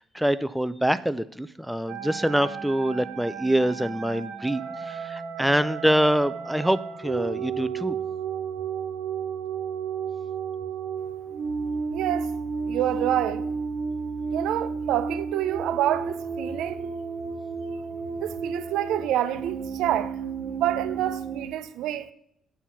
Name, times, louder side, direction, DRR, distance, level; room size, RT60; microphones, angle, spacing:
voice 1, 0.0-8.0, equal, ahead, 0.3 m, -25 dB
sound 1, 1.9-21.5, right 5 dB, 70° right, 1.4 m, -33 dB
voice 2, 11.9-12.3 12.7-13.4 14.3-16.9 18.2-20.2 20.5-22.1, right 12 dB, 85° right, 0.6 m, -27 dB
8.8 x 4.5 x 6.9 m
cardioid pair, 155°, 0 cm